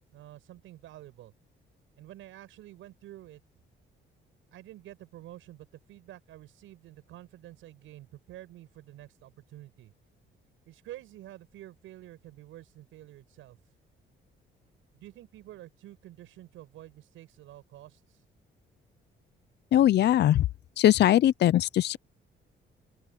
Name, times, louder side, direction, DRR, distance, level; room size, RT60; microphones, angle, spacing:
voice 1, 0.1-1.3 2.0-3.4 4.5-9.9 10.7-13.6 14.9-18.2, right 14 dB, 90° right, 6.3 m, -49 dB
voice 2, 19.7-20.4 20.8-22.0, left 12 dB, 60° left, 0.5 m, -21 dB
open air
cardioid pair, 90°, 20 cm